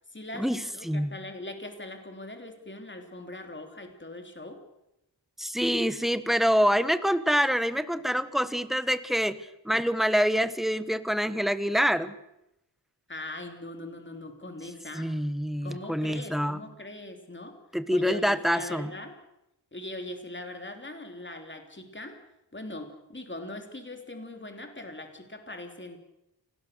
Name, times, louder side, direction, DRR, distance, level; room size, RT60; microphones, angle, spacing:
voice 1, 0.1-4.6 13.1-15.1 15.6-17.6 17.9-19.2 19.7-22.2 22.5-26.0, left 1 dB, 25° left, 5 dB, 3.2 m, -41 dB
voice 2, 5.4-12.1 14.9-16.6 17.7-18.9, equal, ahead, 12 dB, 1.4 m, -26 dB
28.5 x 19.0 x 6.7 m, 0.86 s
wide cardioid pair, 70°, 42 cm